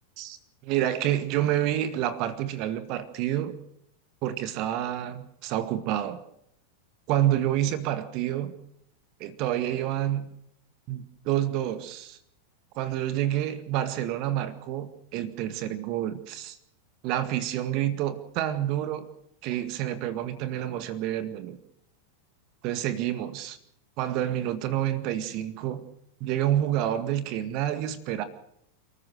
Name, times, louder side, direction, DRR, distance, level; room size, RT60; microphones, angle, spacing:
voice 1, 0.6-3.6 4.2-6.2 7.1-8.5 9.2-10.3 10.9-12.2 12.8-16.6 17.0-19.1 19.4-21.6 22.6-23.6 24.0-25.8 26.2-28.2, right 12 dB, 40° right, 11 dB, 1.9 m, -28 dB
29.5 x 14.5 x 6.5 m, 0.73 s
figure-of-eight pair, 90°, 0 cm